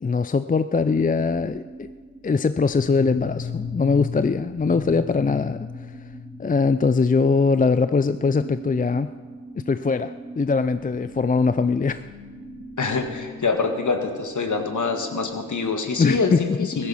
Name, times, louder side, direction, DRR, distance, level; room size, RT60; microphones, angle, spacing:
voice 1, 0.0-1.9 2.2-5.7 6.4-9.1 9.7-12.0 16.0-16.8, left 4 dB, 25° left, 12 dB, 0.5 m, -22 dB
sound 1, 1.2-15.9, right 3 dB, 15° right, 3.5 m, -42 dB
sound 2, 1.6-1.8 2.7-7.2 7.5-7.7 8.0-8.3 8.5-8.8 9.5-9.6 10.6-13.7, left 6 dB, 85° left, 2.4 m, -38 dB
voice 2, 12.8-16.9, left 4 dB, 55° left, 5 dB, 1.9 m, -25 dB
15.5 x 13.0 x 5.6 m, 1.5 s
supercardioid pair, 40°, 36 cm